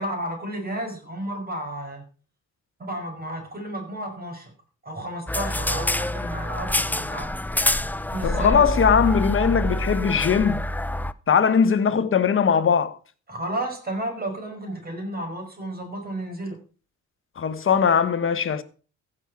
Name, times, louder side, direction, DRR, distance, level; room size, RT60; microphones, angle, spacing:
voice 1, 0.0-2.0 2.8-4.5 4.8-7.3 8.1-8.6 13.3-16.6, right 1 dB, 30° right, 5.7 m, -32 dB
sound 1, 5.3-11.1, left 1 dB, 5° left, 0.5 m, -26 dB
voice 2, 8.2-10.6 11.3-13.0 17.4-18.6, left 6 dB, 45° left, 1.3 m, -20 dB
15.5 x 6.6 x 6.0 m
cardioid pair, 90°, 30 cm